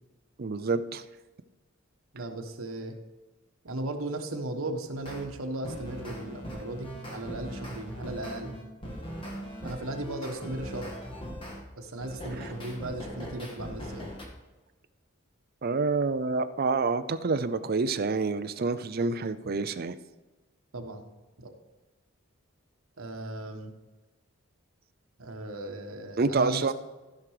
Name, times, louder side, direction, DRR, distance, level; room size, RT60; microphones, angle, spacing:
voice 1, 0.4-1.0 12.4-12.5 15.6-20.0 26.2-26.7, right 4 dB, 45° right, 11 dB, 0.5 m, -27 dB
voice 2, 2.1-3.0 3.6-8.6 9.6-11.0 11.8-14.1 20.7-21.0 21.4-21.5 23.0-23.7 25.2-26.7, right 1 dB, 80° right, 4 dB, 1.4 m, -36 dB
sound 1, 5.0-5.3 5.6-11.6 12.0-14.3, equal, 25° left, 1.8 m, -40 dB
14.5 x 6.0 x 4.9 m, 1.2 s
head